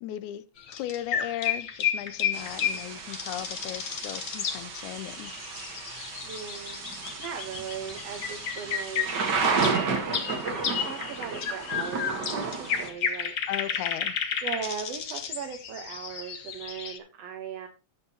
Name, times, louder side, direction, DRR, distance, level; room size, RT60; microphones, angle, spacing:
voice 1, 0.0-5.3 13.5-14.2, left 13 dB, 80° left, 2.0 m, -37 dB
sound 1, 0.6-17.0, left 7 dB, 55° left, 1.3 m, -33 dB
Thunder / Rain, 2.3-12.9, right 4 dB, 45° right, 1.6 m, -33 dB
voice 2, 6.2-6.8 7.2-9.1 9.4-9.9 10.4-13.3 14.4-17.7, right 7 dB, 65° right, 2.0 m, -38 dB
12.5 x 8.1 x 2.9 m
omnidirectional pair, 3.6 m